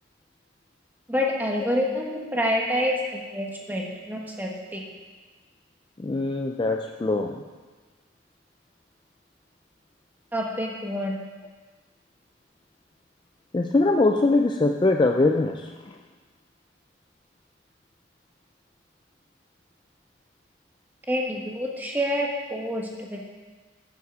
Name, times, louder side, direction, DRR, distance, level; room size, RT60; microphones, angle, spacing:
voice 1, 1.1-4.9 10.3-11.2 21.1-23.2, equal, 10° right, -1 dB, 1.2 m, -27 dB
voice 2, 6.0-7.4 13.5-16.0, left 2 dB, 25° left, 3 dB, 0.3 m, -22 dB
8.0 x 7.4 x 6.7 m, 1.4 s
head